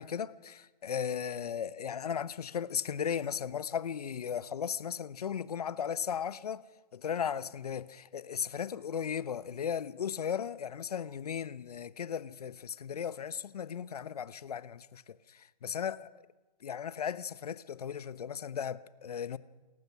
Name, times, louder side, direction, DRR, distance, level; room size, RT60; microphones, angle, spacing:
voice 1, 0.0-6.6 6.9-16.1 16.6-19.4, left 8 dB, 65° left, 1.0 m, -36 dB
29.5 x 15.0 x 5.9 m
hypercardioid pair, 145°, 21 cm